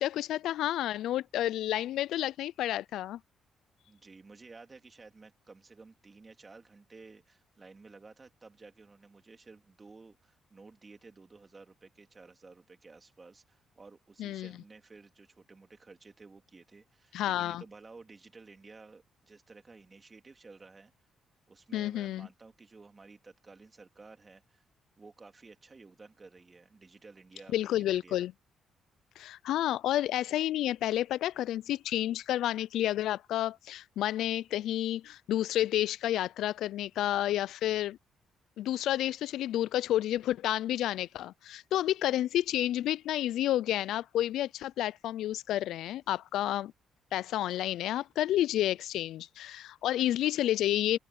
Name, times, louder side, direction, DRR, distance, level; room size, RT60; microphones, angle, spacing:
voice 1, 0.0-3.2 14.2-14.5 17.1-17.6 21.7-22.3 27.5-28.3 29.2-38.0 38.6-46.7 47.1-51.0, left 13 dB, 80° left, 0.3 m, -30 dB
voice 2, 3.9-20.9 21.5-24.6 25.0-28.3, right 3 dB, 30° right, 2.7 m, -54 dB
cardioid pair, 90°, 0 cm